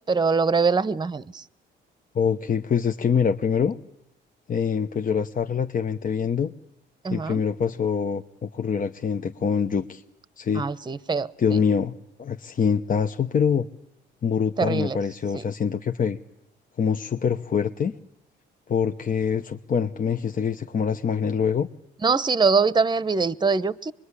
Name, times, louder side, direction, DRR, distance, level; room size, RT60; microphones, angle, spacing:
voice 1, 0.1-1.4 7.0-7.4 10.5-11.3 14.6-15.0 15.3-15.4 22.0-23.9, right 4 dB, 20° right, 18 dB, 0.9 m, -23 dB
voice 2, 2.1-3.8 4.5-6.5 7.1-10.0 10.4-10.6 11.4-11.9 12.2-13.7 14.2-16.2 16.8-17.9 18.7-21.7, left 7 dB, 45° left, 6 dB, 1.0 m, -24 dB
25.5 x 21.5 x 9.9 m, 0.89 s
cardioid pair, 90°, 20 cm